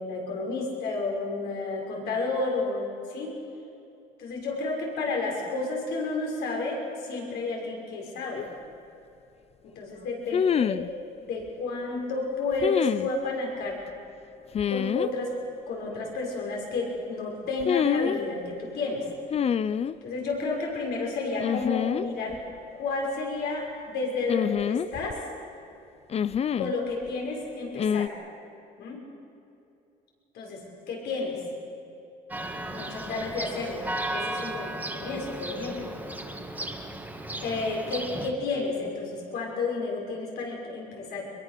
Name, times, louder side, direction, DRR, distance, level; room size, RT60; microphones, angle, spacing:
voice 1, 0.0-3.4 4.2-8.4 9.6-10.7 11.2-13.8 14.7-15.4 15.7-19.0 20.0-22.4 22.8-25.2 26.6-28.1 28.8-29.0 30.3-30.6 30.9-31.4 32.7-33.8 34.1-35.9 37.4-41.2, left 3 dB, 75° left, -1 dB, 6.2 m, -31 dB
sound 1, 8.4-8.5 10.3-10.9 12.6-13.1 14.5-15.1 17.6-18.2 19.3-20.0 21.4-22.1 22.3-22.4 24.3-25.2 26.1-26.7 27.8-28.1, left 8 dB, 40° left, 0.6 m, -26 dB
Church bell, 32.3-38.3, right 1 dB, 10° right, 2.1 m, -35 dB
23.5 x 22.5 x 6.8 m, 2.7 s
cardioid pair, 110°, 17 cm